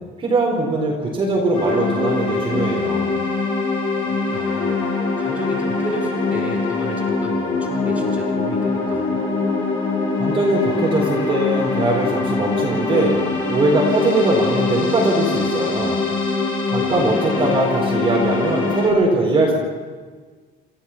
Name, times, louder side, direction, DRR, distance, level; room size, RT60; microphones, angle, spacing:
voice 1, 0.2-3.1 10.2-13.2 13.5-16.0 16.7-19.5, right 2 dB, 25° right, -2 dB, 4.2 m, -20 dB
sound 1, 1.5-18.9, left 4 dB, 25° left, 7.7 m, -23 dB
voice 2, 4.3-4.8 5.2-9.2 16.7-17.2, right 1 dB, 5° right, -2 dB, 5.3 m, -33 dB
29.5 x 16.0 x 5.9 m, 1.5 s
cardioid pair, 180°, 19 cm